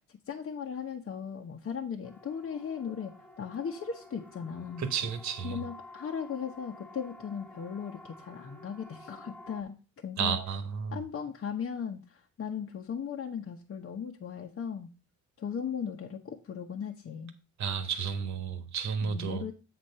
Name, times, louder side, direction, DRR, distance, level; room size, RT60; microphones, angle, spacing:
voice 1, 0.3-4.9 5.4-10.4 10.9-14.9 15.4-17.3 19.0-19.5, left 7 dB, 45° left, 1.0 m, -37 dB
Siren, 2.0-9.6, left 2 dB, 5° left, 1.0 m, -51 dB
voice 2, 4.8-5.6 10.2-11.0 17.6-19.4, right 7 dB, 65° right, 1.5 m, -32 dB
7.9 x 4.3 x 5.5 m
cardioid pair, 90°, 30 cm